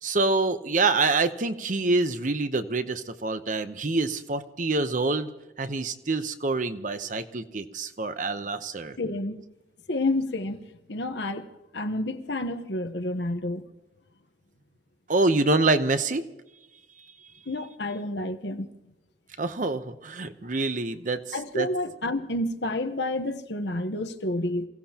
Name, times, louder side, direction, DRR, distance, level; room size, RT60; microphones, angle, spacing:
voice 1, 0.0-5.3 5.6-9.0 15.1-16.3 19.4-21.7, right 3 dB, 45° right, 0.8 m, -26 dB
voice 2, 9.0-9.4 9.9-10.6 10.9-11.5 11.7-13.6 17.5-18.7 21.3-24.7, left 1 dB, 70° left, 1.1 m, -29 dB
28.0 x 16.5 x 2.9 m
head